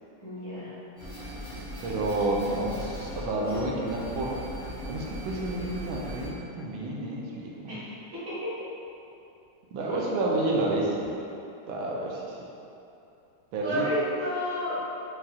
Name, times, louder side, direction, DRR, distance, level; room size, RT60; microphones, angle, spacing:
voice 1, 0.2-0.7 7.7-8.5 9.9-10.0 13.6-14.8, equal, 45° right, -16 dB, 1.9 m, -31 dB
sound 1, 1.0-6.3, equal, 20° left, 1.2 m, -39 dB
voice 2, 1.8-4.3 4.8-7.7 9.7-11.2 11.7-12.4 13.5-13.9, right 2 dB, 85° right, -2 dB, 1.4 m, -30 dB
5.5 x 2.7 x 2.4 m, 2.8 s
omnidirectional pair, 2.2 m